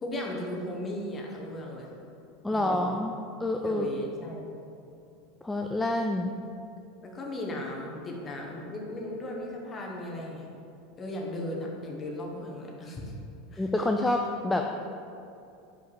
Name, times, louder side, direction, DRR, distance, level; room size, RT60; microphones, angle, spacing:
voice 1, 0.0-1.9 2.5-3.0 3.6-4.6 7.0-10.5 11.0-13.1 13.5-13.7, left 1 dB, 25° left, -1 dB, 1.1 m, -36 dB
voice 2, 2.4-3.1 3.4-3.9 5.4-6.3 13.6-14.9, left 1 dB, 10° left, 3 dB, 0.3 m, -28 dB
5.4 x 5.1 x 4.1 m, 2.7 s
supercardioid pair, 125°, 0 cm